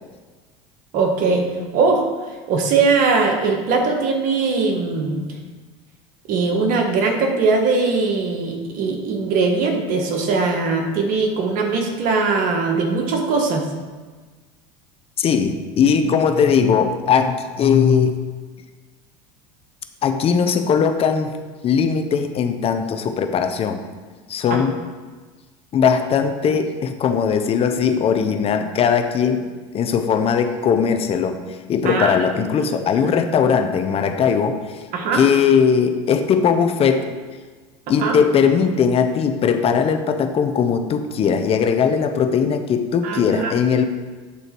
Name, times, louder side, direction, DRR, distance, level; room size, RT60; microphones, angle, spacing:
voice 1, 0.9-1.5 1.7-2.0 2.5-5.3 6.3-13.7 24.5-24.6 31.8-32.2 33.0-33.1 34.9-35.2 38.0-38.2 43.0-43.5, right 4 dB, 55° right, 3 dB, 1.3 m, -20 dB
voice 2, 15.2-18.2 20.0-21.3 21.6-23.8 24.3-24.7 25.7-29.5 29.7-31.4 31.7-34.8 35.1-37.1 37.9-43.8, left 6 dB, 35° left, 8 dB, 0.6 m, -19 dB
8.4 x 4.0 x 4.5 m, 1.4 s
supercardioid pair, 100°, 16 cm